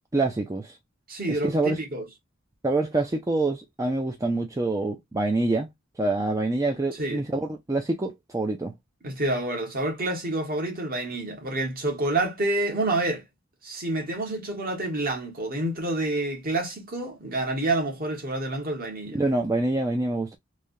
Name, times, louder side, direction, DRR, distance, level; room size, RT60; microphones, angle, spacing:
voice 1, 0.1-0.8 1.3-1.8 2.6-5.7 6.0-8.7 19.1-20.4, right 2 dB, 15° right, 0.4 m, -26 dB
voice 2, 1.1-2.1 7.0-7.2 9.0-13.2 13.6-19.2, right 2 dB, 45° right, 1.2 m, -28 dB
3.2 x 2.3 x 2.5 m
head